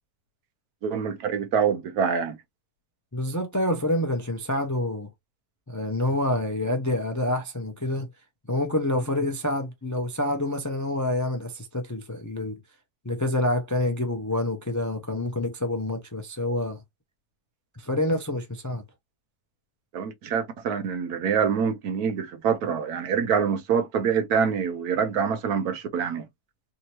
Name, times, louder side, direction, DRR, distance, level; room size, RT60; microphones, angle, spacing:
voice 1, 0.8-2.4 19.9-26.2, right 6 dB, 75° right, 1.3 m, -25 dB
voice 2, 3.1-5.1 5.7-8.1 8.5-12.6 13.0-16.8 17.8-18.8, left 1 dB, 20° left, 0.4 m, -27 dB
3.6 x 2.8 x 2.8 m
omnidirectional pair, 1.6 m